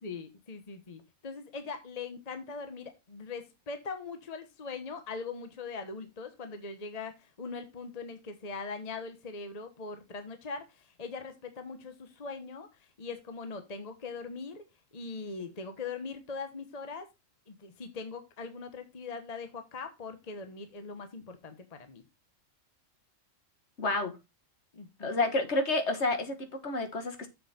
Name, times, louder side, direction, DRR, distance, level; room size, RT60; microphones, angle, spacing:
voice 1, 0.0-14.6 14.9-17.1 17.5-22.0 24.7-25.3, left 4 dB, 30° left, 1.1 m, -41 dB
voice 2, 23.8-24.2 25.0-27.3, left 2 dB, 55° left, 1.7 m, -29 dB
7.2 x 7.1 x 4.2 m
omnidirectional pair, 1.4 m